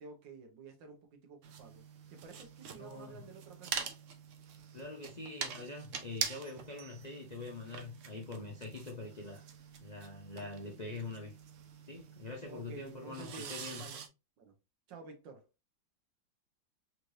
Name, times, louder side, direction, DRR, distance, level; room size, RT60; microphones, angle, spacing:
voice 1, 0.0-1.8 2.1-3.9 12.5-14.0 14.4-14.5 14.9-15.5, right 4 dB, 85° right, 1.7 m, -51 dB
sound 1, 1.4-14.1, right 7 dB, 60° right, 0.8 m, -45 dB
voice 2, 2.7-3.2 4.7-9.4 9.8-11.4 11.8-13.8, left 3 dB, 55° left, 0.4 m, -44 dB
4.2 x 3.2 x 2.6 m
omnidirectional pair, 1.9 m